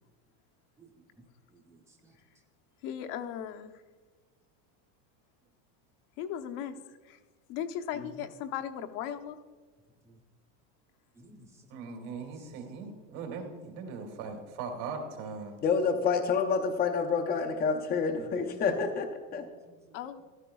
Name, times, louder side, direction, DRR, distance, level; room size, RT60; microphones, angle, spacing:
voice 1, 0.8-1.2 1.5-2.1 10.0-10.2 11.1-11.8 19.7-20.0, right 1 dB, 5° right, 1 dB, 0.9 m, -58 dB
voice 2, 2.8-3.7 6.2-6.7 7.1-7.2 7.5-9.4 19.9-20.2, left 9 dB, 50° left, 7 dB, 0.9 m, -37 dB
voice 3, 11.7-15.6, right 4 dB, 65° right, 3 dB, 2.5 m, -39 dB
voice 4, 15.6-19.4, left 5 dB, 20° left, 3 dB, 0.6 m, -28 dB
14.0 x 12.5 x 2.3 m, 1.4 s
supercardioid pair, 150°, 50 cm